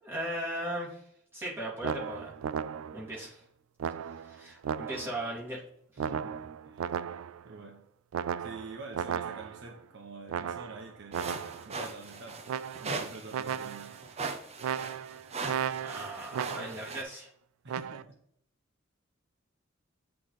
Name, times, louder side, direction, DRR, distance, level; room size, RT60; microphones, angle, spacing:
voice 1, 0.0-1.0 1.3-2.3 2.9-3.4 4.2-5.6 5.9-6.1 15.8-17.3, right 1 dB, 10° right, -7 dB, 2.6 m, -37 dB
sound 1, 1.8-3.1 3.8-5.3 6.0-7.5 8.1-9.7 10.3-11.7 12.5-13.1 13.3-14.0 14.6-16.9 17.7-18.0, right 8 dB, 75° right, 0.3 m, -35 dB
voice 2, 6.0-6.3 6.6-6.9 7.4-7.8 8.4-11.3 11.6-12.4 12.8-13.9 17.6-18.2, right 3 dB, 60° right, 0 dB, 0.9 m, -46 dB
sound 2, 11.1-17.0, right 4 dB, 30° right, 0.7 m, -40 dB
7.7 x 3.3 x 4.1 m, 0.68 s
head